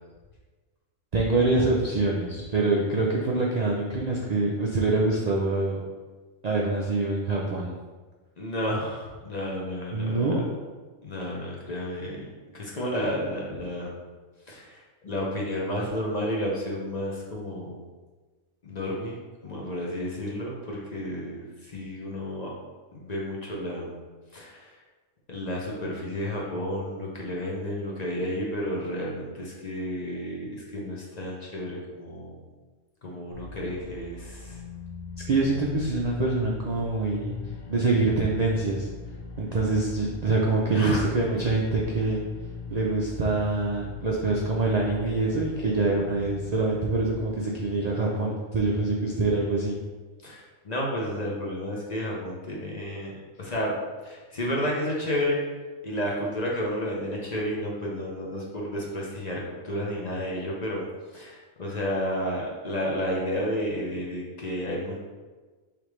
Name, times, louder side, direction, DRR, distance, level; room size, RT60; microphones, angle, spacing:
voice 1, 1.1-5.8 6.4-7.7 9.9-10.4 35.3-37.4 37.7-38.9 39.4-42.2 42.7-49.8, right 3 dB, 80° right, -3 dB, 0.3 m, -25 dB
voice 2, 8.4-10.3 11.0-12.3 12.5-14.0 14.5-17.8 18.6-22.5 22.9-23.9 24.3-24.7 25.3-32.4 33.0-34.6 40.7-41.0 50.2-53.1 53.4-53.7 54.0-55.4 55.8-60.8 61.1-65.0, equal, 40° left, -3 dB, 0.7 m, -31 dB
sound 1, 33.3-47.3, left 4 dB, 85° left, 1.1 m, -40 dB
5.0 x 3.3 x 3.1 m, 1.3 s
omnidirectional pair, 1.4 m